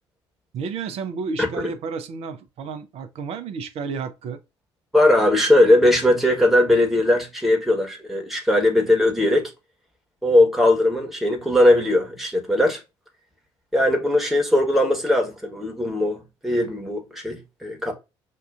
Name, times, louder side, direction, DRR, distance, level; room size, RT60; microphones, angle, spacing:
voice 1, 0.5-4.4, right 5 dB, 50° right, 0.6 m, -31 dB
voice 2, 4.9-9.5 10.2-12.8 13.7-17.9, left 1 dB, ahead, 1.2 m, -19 dB
5.4 x 2.4 x 2.4 m
figure-of-eight pair, 50°, 14 cm